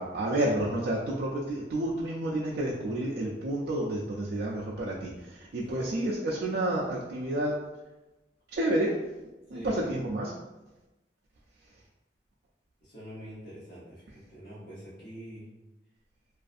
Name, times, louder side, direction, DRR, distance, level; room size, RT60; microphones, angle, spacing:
voice 1, 0.0-7.6 8.5-9.0 9.5-10.3, right 1 dB, 65° right, -4 dB, 0.3 m, -30 dB
voice 2, 5.6-6.0 9.5-9.9 12.8-15.5, equal, 55° left, -11 dB, 0.8 m, -45 dB
2.4 x 2.4 x 2.4 m, 1.0 s
head